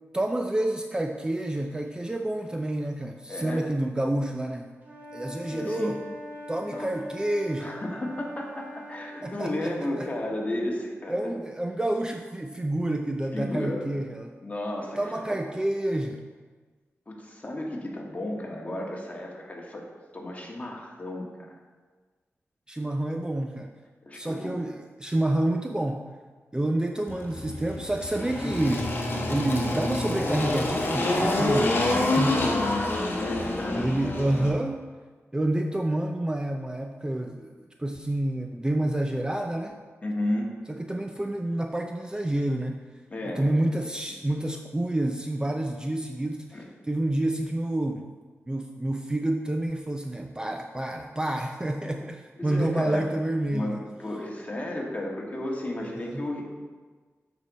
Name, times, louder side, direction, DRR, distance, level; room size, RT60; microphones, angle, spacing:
voice 1, 0.1-4.7 5.1-6.0 6.5-7.7 9.2-9.7 10.0-10.1 11.1-14.4 15.0-16.2 22.7-23.7 24.1-26.0 26.5-28.9 29.3-32.5 33.8-34.8 35.3-37.5 37.8-39.7 40.8-42.8 43.4-46.6 46.9-48.1 48.5-53.8 56.0-56.3, right 1 dB, 15° right, 4 dB, 0.5 m, -28 dB
voice 2, 3.3-3.7 5.5-5.9 6.7-6.9 7.6-11.4 13.3-14.0 14.4-15.4 17.1-19.9 20.1-21.5 24.0-24.6 33.2-33.9 40.0-40.5 43.1-43.6 46.5-46.6 52.4-53.1 53.5-56.4, left 1 dB, 30° left, -1 dB, 1.6 m, -33 dB
Wind instrument woodwind instrument, 4.8-9.5, equal, 35° right, 1.8 m, -42 dB
Engine, 27.1-34.5, left 2 dB, 45° left, 1.3 m, -27 dB
8.4 x 6.3 x 4.1 m, 1.4 s
wide cardioid pair, 85°, 5 cm